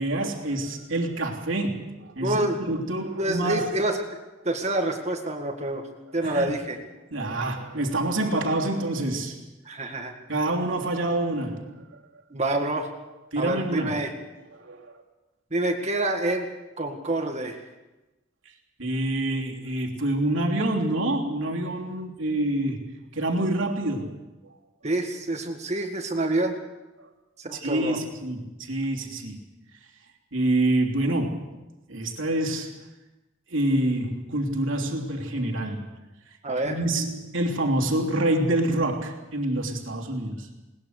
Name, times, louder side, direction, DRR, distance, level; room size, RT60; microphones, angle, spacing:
voice 1, 0.0-3.7 6.2-6.5 7.1-9.4 10.3-11.8 13.3-13.9 14.5-14.9 18.8-24.2 27.0-27.1 27.5-29.4 30.3-31.6 31.9-32.8 33.5-35.9 36.6-40.5, right 1 dB, 80° right, 0 dB, 3.2 m, -27 dB
voice 2, 2.2-2.6 3.2-4.0 4.4-5.8 6.1-6.8 9.7-10.1 12.3-12.9 13.4-14.1 15.5-16.5 16.8-17.6 24.8-26.5 27.4-28.0 36.4-36.8, right 1 dB, 35° right, 3 dB, 1.9 m, -27 dB
21.0 x 19.5 x 6.6 m, 1.1 s
head